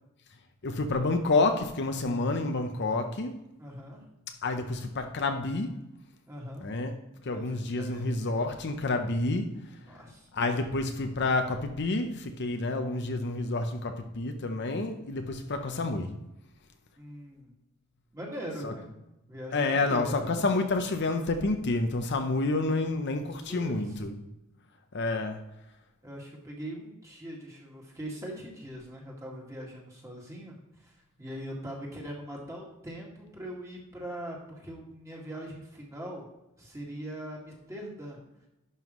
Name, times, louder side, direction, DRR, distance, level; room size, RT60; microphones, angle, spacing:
voice 1, 0.6-3.3 4.4-5.7 6.6-6.9 7.2-9.5 10.3-16.1 18.6-18.7 19.5-24.1 24.9-25.4, left 3 dB, 55° left, 0.7 m, -29 dB
voice 2, 3.6-4.1 6.3-6.7 7.3-8.3 9.9-10.3 15.3-15.6 17.0-17.5 18.1-18.9 19.3-20.2 23.5-24.0 26.0-36.2 36.6-38.2, equal, 15° right, 2.0 m, -41 dB
11.0 x 5.6 x 3.1 m
head